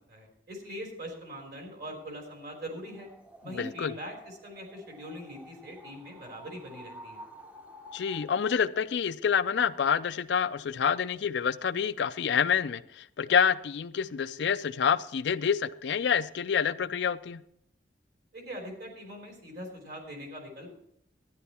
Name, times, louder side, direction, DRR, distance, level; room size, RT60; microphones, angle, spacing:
voice 1, 0.1-3.1 3.4-7.2 18.3-20.7, equal, 50° right, 2 dB, 3.4 m, -42 dB
sound 1, 2.8-8.6, equal, 10° right, 0.7 m, -50 dB
voice 2, 3.4-3.9 7.9-17.4, left 7 dB, 65° left, 13 dB, 0.4 m, -27 dB
12.5 x 10.5 x 4.3 m, 0.73 s
head